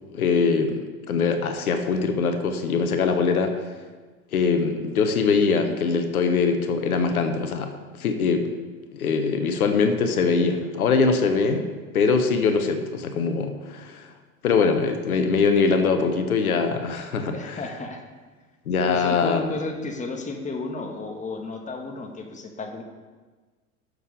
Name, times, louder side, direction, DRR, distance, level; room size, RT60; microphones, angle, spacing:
voice 1, 0.1-3.5 4.3-7.7 8.0-8.5 8.9-11.7 11.9-14.1 14.4-17.6 18.7-19.5, left 5 dB, 75° left, 7 dB, 1.2 m, -22 dB
voice 2, 17.3-18.0 18.8-22.8, left 3 dB, 15° left, 3 dB, 1.5 m, -33 dB
12.5 x 6.6 x 4.9 m, 1.4 s
figure-of-eight pair, 90°, 44 cm